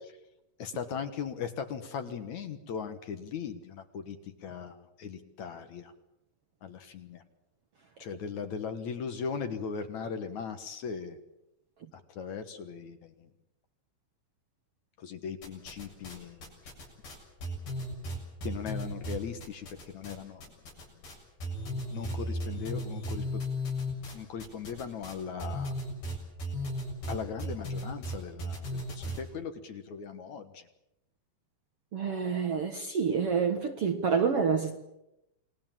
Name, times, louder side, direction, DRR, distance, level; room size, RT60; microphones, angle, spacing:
voice 1, 0.6-4.2 4.4-5.9 6.6-7.2 8.0-11.2 12.2-13.3 15.0-16.5 18.4-20.4 21.9-23.2 24.1-25.7 27.1-30.6, left 6 dB, 60° left, 2.4 m, -38 dB
sound 1, 15.4-16.2 16.4-20.1 20.4-21.1 21.4-29.2, equal, 80° left, 9.3 m, -35 dB
voice 2, 31.9-34.8, right 6 dB, 55° right, 1.7 m, -28 dB
29.0 x 21.0 x 7.5 m
omnidirectional pair, 4.3 m